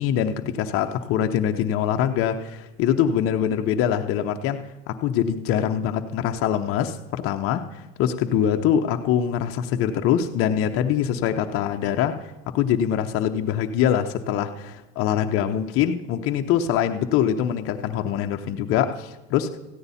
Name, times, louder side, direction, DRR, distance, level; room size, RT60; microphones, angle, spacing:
voice 1, 0.0-7.7 8.0-12.2 12.5-19.6, left 9 dB, 50° left, 0.8 m, -23 dB
14.0 x 9.4 x 4.2 m
supercardioid pair, 120°, 30 cm